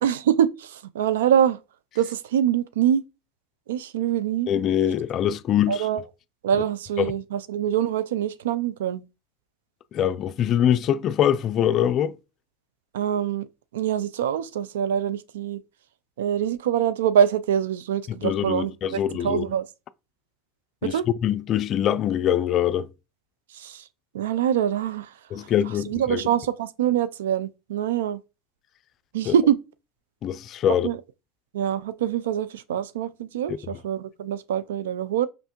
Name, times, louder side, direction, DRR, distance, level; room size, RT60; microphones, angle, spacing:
voice 1, 0.0-1.6 2.0-3.0 3.7-4.5 5.7-6.0 6.4-9.0 12.9-13.5 13.7-15.6 16.2-19.6 20.8-21.0 23.5-23.8 24.1-25.5 25.9-28.2 29.1-29.6 30.8-31.0 31.5-35.3, right 9 dB, 85° right, 0.3 m, -24 dB
voice 2, 4.5-5.8 7.0-7.1 9.9-12.2 18.2-19.4 20.8-22.9 25.3-26.2 29.3-29.4 30.2-30.9, left 10 dB, 45° left, 0.3 m, -23 dB
5.1 x 3.2 x 2.9 m
hypercardioid pair, 95°, 0 cm